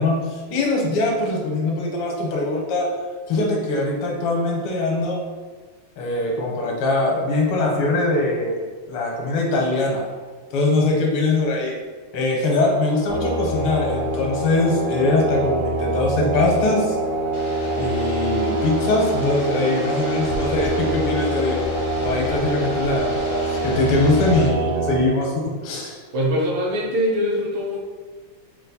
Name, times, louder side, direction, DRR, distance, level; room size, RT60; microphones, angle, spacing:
voice 1, 0.0-2.9 3.3-5.2 6.0-8.5 8.9-10.1 10.5-11.7 12.1-17.0 17.8-21.6 22.0-26.0, left 2 dB, 85° left, 0 dB, 1.7 m, -22 dB
sound 1, 13.1-25.0, right 2 dB, 85° right, 1.7 m, -25 dB
sound 2, 17.3-24.5, left 1 dB, 65° left, 0.9 m, -35 dB
voice 2, 26.1-27.8, equal, 70° right, -4 dB, 1.6 m, -22 dB
4.1 x 2.4 x 4.0 m, 1.4 s
omnidirectional pair, 2.3 m